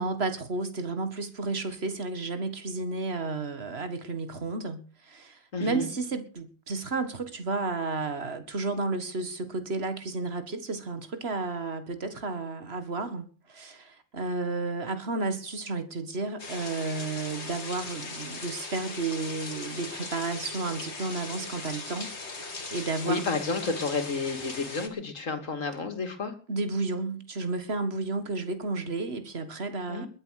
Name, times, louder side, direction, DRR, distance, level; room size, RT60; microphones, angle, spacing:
voice 1, 0.0-23.2 26.5-30.1, right 3 dB, 55° right, 2.1 m, -32 dB
voice 2, 5.5-5.9 23.1-26.3 29.9-30.1, left 4 dB, 80° left, 2.8 m, -31 dB
sound 1, 16.4-24.9, left 3 dB, 55° left, 2.3 m, -39 dB
21.5 x 8.0 x 6.7 m
omnidirectional pair, 1.3 m